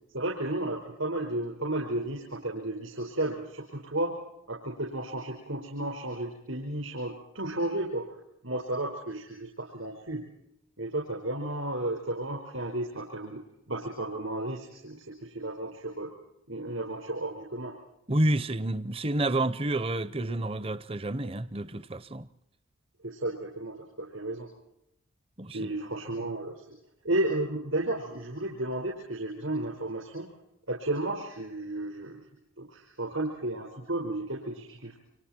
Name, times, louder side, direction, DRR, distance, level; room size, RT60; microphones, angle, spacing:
voice 1, 0.1-4.2 4.5-8.1 8.4-10.3 10.8-16.1 16.5-17.7 23.0-24.5 25.5-26.7 27.0-30.3 30.7-32.2 32.6-35.0, right 1 dB, 75° right, 5.2 m, -33 dB
voice 2, 18.1-22.3 25.4-25.7, right 1 dB, 25° right, 0.7 m, -29 dB
29.5 x 25.5 x 4.5 m
head